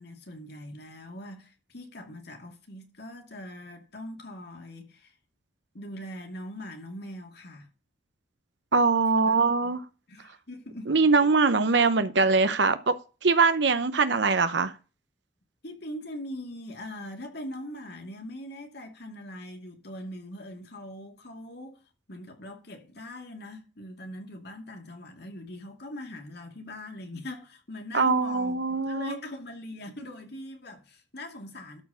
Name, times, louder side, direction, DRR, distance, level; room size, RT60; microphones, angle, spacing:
voice 1, 0.0-5.1 5.7-7.7 9.1-9.8 10.1-10.9 11.2-11.3 15.6-21.8 22.1-31.8, left 1 dB, 55° left, 2.5 m, -41 dB
voice 2, 8.7-9.8 10.9-12.9 13.2-14.7 27.9-29.2, right 4 dB, 65° right, 0.9 m, -22 dB
13.0 x 4.8 x 7.0 m
head